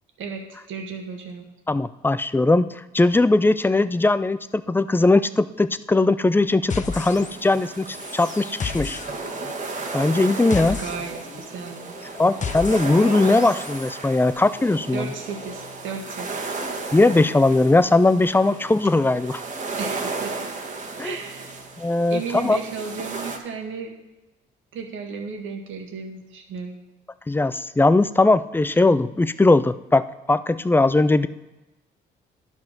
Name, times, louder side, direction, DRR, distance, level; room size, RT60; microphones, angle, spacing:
voice 1, 0.2-1.5 10.8-11.9 14.9-16.5 19.8-20.5 21.0-21.6 22.1-23.9 24.7-26.7, right 5 dB, 75° right, 2 dB, 1.8 m, -34 dB
voice 2, 1.7-9.0 9.9-10.8 12.2-15.1 16.9-19.4 21.0-21.2 21.8-22.6 27.3-30.0 30.3-31.3, left 2 dB, 10° left, 14 dB, 0.4 m, -19 dB
sound 1, 6.7-7.6 7.9-13.9, left 5 dB, 40° left, 1.0 m, -34 dB
sound 2, 6.9-23.4, right 3 dB, 40° right, 1.6 m, -34 dB
11.0 x 5.4 x 6.0 m, 1.0 s
cardioid pair, 90°, 20 cm